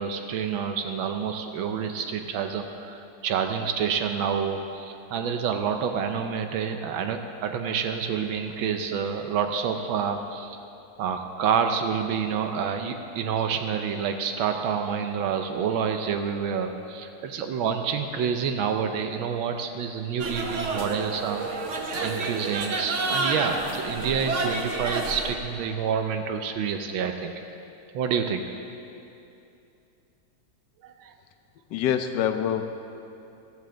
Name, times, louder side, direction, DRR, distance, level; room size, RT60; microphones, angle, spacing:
voice 1, 0.0-10.6 11.0-27.3 27.9-28.5 30.8-31.1, right 7 dB, 85° right, 6 dB, 1.5 m, -28 dB
sound 1, 20.2-25.3, right 3 dB, 45° right, 1.1 m, -29 dB
voice 2, 31.7-32.6, left 9 dB, 70° left, 8 dB, 1.2 m, -25 dB
15.5 x 14.0 x 3.8 m, 2.7 s
omnidirectional pair, 2.2 m